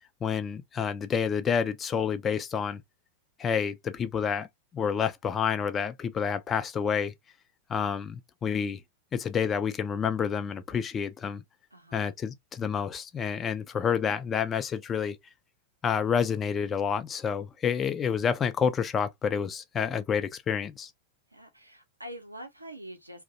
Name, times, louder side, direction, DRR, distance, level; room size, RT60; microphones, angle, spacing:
voice 1, 0.2-2.8 3.4-4.5 4.7-7.1 7.7-8.8 9.1-11.4 11.9-15.2 15.8-20.9, left 7 dB, 25° left, 0.4 m, -29 dB
voice 2, 11.7-12.1 21.3-23.2, right 1 dB, 90° right, 0.5 m, -45 dB
2.6 x 2.1 x 2.6 m
figure-of-eight pair, 95°, 0 cm